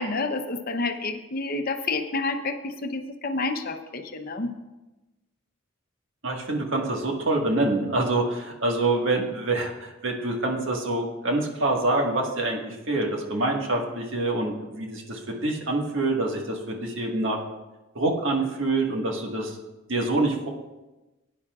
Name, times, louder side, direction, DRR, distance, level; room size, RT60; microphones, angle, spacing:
voice 1, 0.0-4.5, left 3 dB, 45° left, 7 dB, 0.7 m, -29 dB
voice 2, 6.2-17.4 17.9-19.6 19.9-20.5, right 2 dB, 65° right, 0 dB, 1.6 m, -26 dB
17.0 x 9.9 x 2.4 m, 1.1 s
head